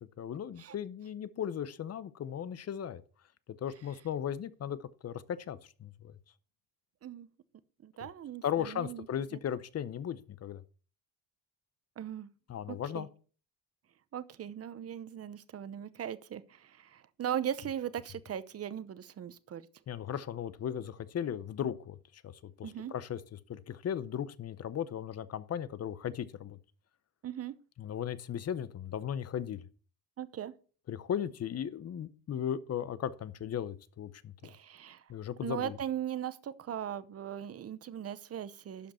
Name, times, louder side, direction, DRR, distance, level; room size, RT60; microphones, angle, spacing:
voice 1, 0.2-3.0 3.6-6.1 8.4-10.6 12.5-13.1 19.9-22.0 22.2-26.6 27.8-29.6 30.9-34.5 35.1-35.8, left 9 dB, 40° left, 0.7 m, -37 dB
voice 2, 7.8-9.1 9.3-9.4 12.0-12.3 12.7-13.1 14.1-19.6 22.6-22.9 27.2-27.5 30.2-30.5 34.4-35.0 35.4-38.9, right 10 dB, 35° right, 0.7 m, -39 dB
12.0 x 5.1 x 4.3 m
cardioid pair, 115°, 41 cm